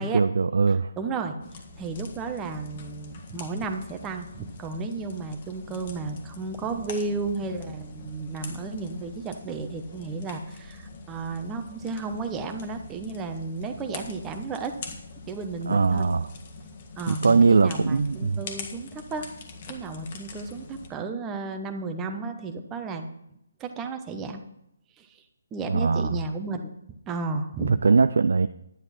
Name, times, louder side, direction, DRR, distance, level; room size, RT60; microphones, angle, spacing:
voice 1, 0.0-0.9 15.7-16.3 17.1-18.4 25.7-26.2 27.6-28.5, right 4 dB, 60° right, 12 dB, 0.4 m, -21 dB
voice 2, 1.0-1.4 1.8-14.7 15.3-16.1 17.0-19.3 19.6-23.1 23.6-24.4 25.0-25.1 25.5-26.7 27.1-27.8, right 3 dB, 15° right, 5 dB, 1.1 m, -33 dB
sound 1, 1.4-20.9, left 4 dB, 40° left, 1.8 m, -43 dB
11.0 x 10.5 x 4.4 m, 0.80 s
figure-of-eight pair, 140°, 0 cm